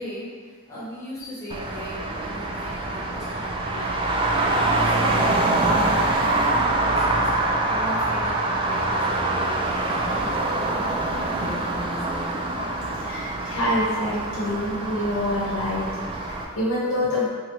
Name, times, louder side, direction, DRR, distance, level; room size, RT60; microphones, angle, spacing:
voice 1, 0.0-12.3, equal, 15° left, -9 dB, 1.3 m, -38 dB
Traffic noise roadway noise, 1.5-16.4, right 2 dB, 25° right, 0.3 m, -25 dB
voice 2, 12.9-17.3, left 1 dB, 75° left, -5 dB, 1.0 m, -26 dB
4.1 x 2.9 x 3.0 m, 1.5 s
head